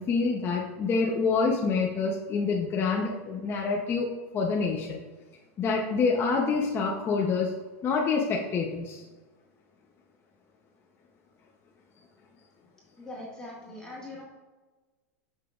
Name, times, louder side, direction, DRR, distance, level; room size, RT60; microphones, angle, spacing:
voice 1, 0.0-4.1 4.3-5.0 5.6-7.5 7.8-9.0, left 4 dB, 25° left, -2 dB, 0.7 m, -27 dB
voice 2, 13.0-14.2, left 1 dB, 10° left, -6 dB, 1.9 m, -41 dB
6.8 x 5.8 x 2.4 m, 1.3 s
supercardioid pair, 125°, 8 cm